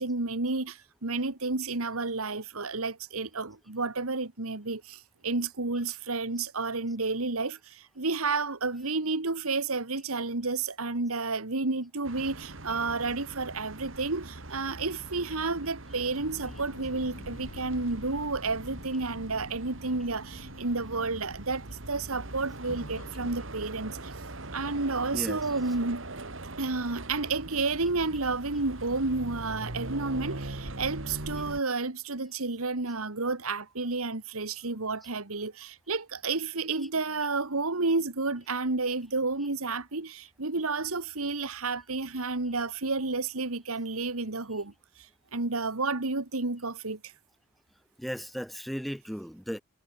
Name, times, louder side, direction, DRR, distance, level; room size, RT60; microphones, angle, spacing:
voice 1, 0.0-24.1 24.5-26.0 26.6-47.1, right 3 dB, 90° right, 1.9 m, -31 dB
sound 1, 12.0-31.6, right 2 dB, 65° right, 2.5 m, -41 dB
sound 2, 15.8-23.4, left 2 dB, 90° left, 1.8 m, -48 dB
voice 2, 25.1-25.8 48.0-49.6, equal, ahead, 2.8 m, -36 dB
head